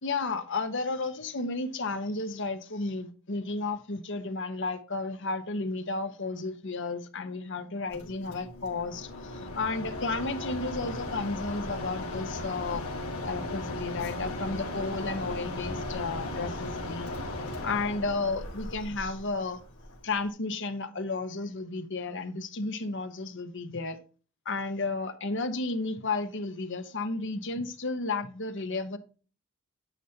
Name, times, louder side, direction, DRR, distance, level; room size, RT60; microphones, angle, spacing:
voice 1, 0.0-12.8 13.2-17.1 17.6-19.6 20.0-24.0 24.4-29.0, left 3 dB, 55° left, 1.1 m, -33 dB
Mechanisms, 7.9-20.3, left 2 dB, 80° left, 2.4 m, -37 dB
10.0 x 8.3 x 2.9 m
head